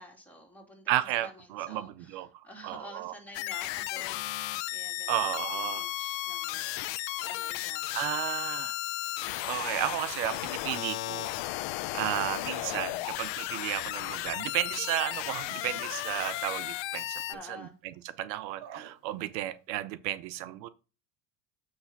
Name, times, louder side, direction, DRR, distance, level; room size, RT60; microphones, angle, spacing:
voice 1, 0.0-4.3 4.6-8.0 17.3-17.8, left 1 dB, 5° left, 2.8 m, -50 dB
voice 2, 0.9-2.3 2.6-3.1 5.1-5.9 7.9-8.8 9.5-11.3 11.9-17.2 17.5-20.7, right 14 dB, 90° right, 0.7 m, -33 dB
sound 1, 3.3-17.3, left 17 dB, 60° left, 0.7 m, -34 dB
Respiratory sounds, 7.2-7.7 8.8-9.3 10.6-11.1 12.1-12.5 13.2-13.6 16.0-16.4 16.9-17.5 18.6-19.0 19.5-19.6, right 9 dB, 55° right, 1.4 m, -51 dB
8.0 x 3.3 x 5.7 m
supercardioid pair, 90°, 50 cm